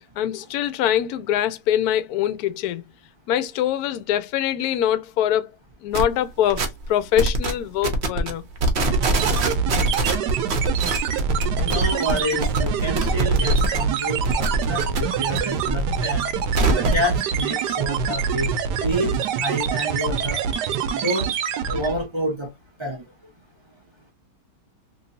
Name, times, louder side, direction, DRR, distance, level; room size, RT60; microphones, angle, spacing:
voice 1, 0.2-2.8 3.3-5.5 5.8-8.4, left 11 dB, 70° left, 0.9 m, -23 dB
sound 1, 5.9-6.1 6.5-6.9 7.2-7.5 7.8-8.3 8.6-13.8 14.1-15.4 15.7-17.0, right 2 dB, 55° right, 0.8 m, -23 dB
sound 2, 8.9-22.1, right 6 dB, 75° right, 1.1 m, -25 dB
voice 2, 11.6-16.3 16.7-18.5 18.8-19.1 19.4-20.4 21.0-21.3 21.7-22.5 22.8-23.0, equal, 40° right, 0.4 m, -28 dB
3.0 x 2.9 x 2.6 m
omnidirectional pair, 1.9 m